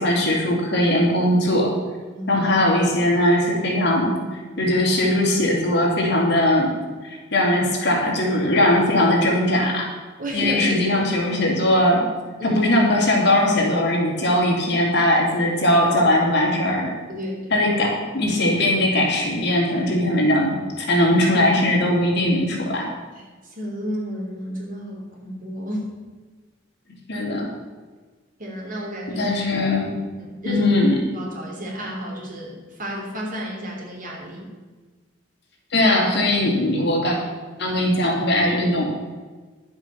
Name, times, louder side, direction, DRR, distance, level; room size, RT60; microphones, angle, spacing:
voice 1, 0.0-1.7 2.3-4.1 4.6-6.7 7.0-9.9 10.3-12.0 12.4-16.9 17.5-22.9 27.1-27.5 29.2-29.9 30.4-31.0 35.7-37.2 37.6-38.9, left 1 dB, 65° left, -2 dB, 3.1 m, -20 dB
voice 2, 2.1-2.5 10.2-11.1 12.4-12.6 17.1-17.6 23.1-23.2 23.5-25.9 28.4-29.3 30.2-30.7 31.1-34.5, right 1 dB, 45° right, -1 dB, 3.3 m, -31 dB
11.0 x 7.8 x 7.0 m, 1.3 s
head